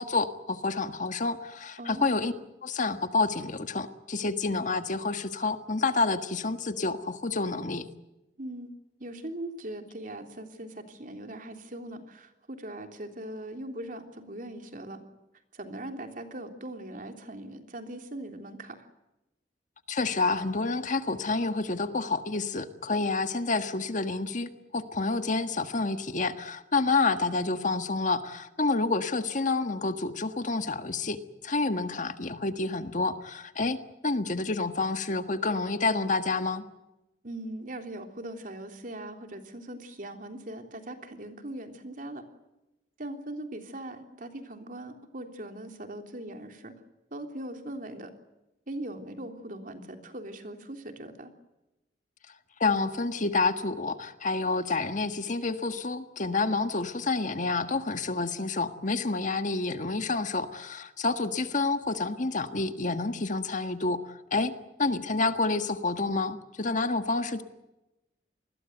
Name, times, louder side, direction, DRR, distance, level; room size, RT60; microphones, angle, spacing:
voice 1, 0.0-2.3 2.6-7.8 19.9-33.8 34.0-36.6 52.6-64.5 64.8-67.4, left 3 dB, 45° left, 9 dB, 1.6 m, -29 dB
voice 2, 1.8-2.1 8.4-8.7 9.0-15.0 15.5-18.9 37.2-42.2 43.0-46.7 47.1-48.1 48.7-51.3, right 1 dB, 50° right, 5 dB, 3.4 m, -40 dB
28.0 x 21.0 x 8.1 m, 0.96 s
head